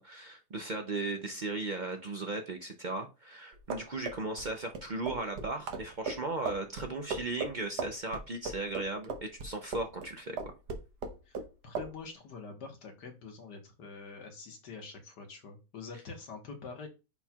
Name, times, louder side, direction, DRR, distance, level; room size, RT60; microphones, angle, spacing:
voice 1, 0.0-10.4, right 2 dB, 60° right, 4 dB, 0.4 m, -36 dB
sound 1, 3.5-10.1 10.4-11.5 11.8-11.9, right 4 dB, 80° right, 1.6 m, -37 dB
voice 2, 11.6-16.9, left 4 dB, 85° left, 3 dB, 2.0 m, -45 dB
9.7 x 4.4 x 2.4 m, 0.28 s
omnidirectional pair, 1.8 m